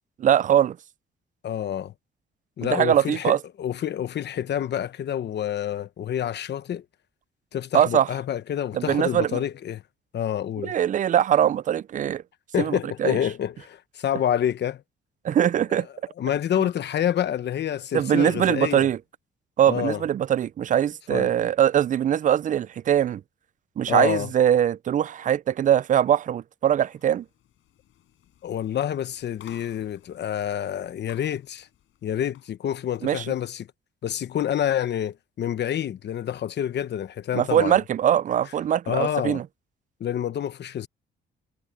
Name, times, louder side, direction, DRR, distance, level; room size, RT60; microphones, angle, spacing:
voice 1, 0.2-0.8 2.6-3.4 7.7-8.1 8.7-9.4 10.6-12.2 12.6-13.2 15.2-15.9 17.9-19.0 19.6-23.2 23.8-27.2 33.0-33.2 37.3-39.4, right 10 dB, 40° right, 0.4 m, -22 dB
voice 2, 1.4-1.9 2.6-6.8 7.5-9.8 10.1-10.7 12.5-14.8 16.2-18.9 19.7-20.0 21.1-21.3 23.9-24.3 28.4-31.7 32.0-33.7 34.0-37.8 38.9-39.4 40.0-40.9, left 10 dB, 60° left, 1.1 m, -28 dB
sound 1, 26.7-32.5, left 12 dB, 80° left, 4.8 m, -55 dB
cardioid pair, 90°, 20 cm